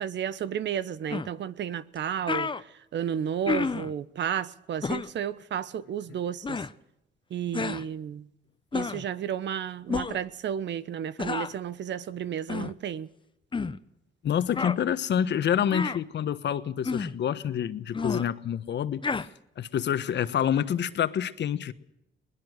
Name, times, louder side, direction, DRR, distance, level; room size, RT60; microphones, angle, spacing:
voice 1, 0.0-2.7 2.9-6.6 7.3-8.3 8.7-13.1, right 9 dB, 65° right, 1.1 m, -32 dB
sound 1, 1.1-1.3 2.0-2.1 2.3-2.6 3.5-3.9 4.8-5.1 6.4-6.7 7.5-7.8 8.7-9.1 9.9-10.2 11.2-11.5 12.5-12.7 13.5-13.8 14.5-14.8 15.7-16.0 16.8-17.2 17.9-18.2 19.0-19.3, left 4 dB, 25° left, 0.9 m, -30 dB
voice 2, 14.2-19.3 19.6-21.7, left 9 dB, 60° left, 1.3 m, -27 dB
22.0 x 20.0 x 6.6 m
cardioid pair, 90°, 20 cm